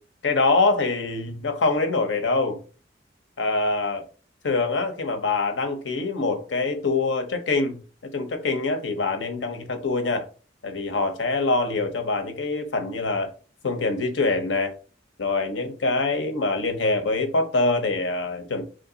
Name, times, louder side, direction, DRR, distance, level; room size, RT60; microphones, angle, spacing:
voice 1, 0.2-2.6 3.4-4.1 4.4-7.7 8.1-10.3 10.6-13.3 13.6-14.7 15.2-18.6, left 3 dB, 90° left, 0.8 m, -24 dB
3.2 x 2.6 x 3.8 m
head